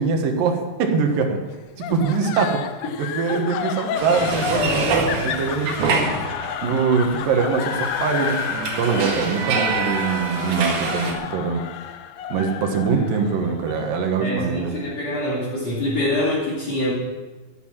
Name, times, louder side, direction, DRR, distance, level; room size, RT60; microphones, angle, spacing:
voice 1, 0.0-1.4 1.8-2.7 3.0-6.1 6.6-11.6 12.3-14.8, right 5 dB, 90° right, 4 dB, 3.2 m, -23 dB
sound 1, 1.8-15.0, left 9 dB, 80° left, 1.6 m, -31 dB
sound 2, 3.9-6.8 7.0-11.1, right 4 dB, 65° right, 3.1 m, -26 dB
voice 2, 14.2-16.9, left 1 dB, 55° left, -8 dB, 3.5 m, -25 dB
12.0 x 10.5 x 7.5 m, 1.3 s
omnidirectional pair, 3.8 m